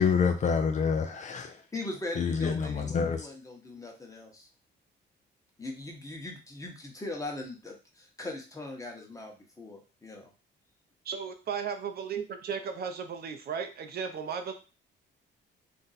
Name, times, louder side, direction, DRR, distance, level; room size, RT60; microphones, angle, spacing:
voice 1, 0.0-1.6 2.2-3.3, left 6 dB, 40° left, 6 dB, 0.4 m, -27 dB
voice 2, 1.7-4.5 5.6-10.3, left 2 dB, 15° left, 1 dB, 0.9 m, -40 dB
voice 3, 11.1-14.5, right 6 dB, 55° right, 6 dB, 0.5 m, -35 dB
2.6 x 2.1 x 4.0 m, 0.33 s
cardioid pair, 90°, 20 cm